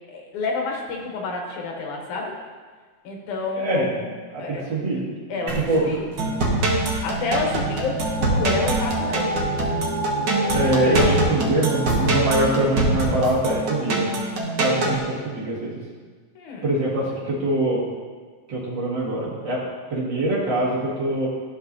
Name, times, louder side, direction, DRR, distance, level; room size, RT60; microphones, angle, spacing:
voice 1, 0.1-2.3 3.0-4.6 5.3-6.1 7.0-9.3 16.4-16.7, left 3 dB, 90° left, 0 dB, 2.6 m, -29 dB
voice 2, 3.6-3.9 4.3-5.0 5.5-5.8 10.5-14.1 14.6-15.7 16.6-17.9 18.5-19.6 19.9-21.3, right 1 dB, 40° right, -6 dB, 2.4 m, -23 dB
sound 1, 5.5-9.4, right 3 dB, 75° right, 1.0 m, -39 dB
sound 2, 6.2-15.0, right 2 dB, 55° right, 1.2 m, -23 dB
13.0 x 6.1 x 2.7 m, 1.5 s
omnidirectional pair, 3.4 m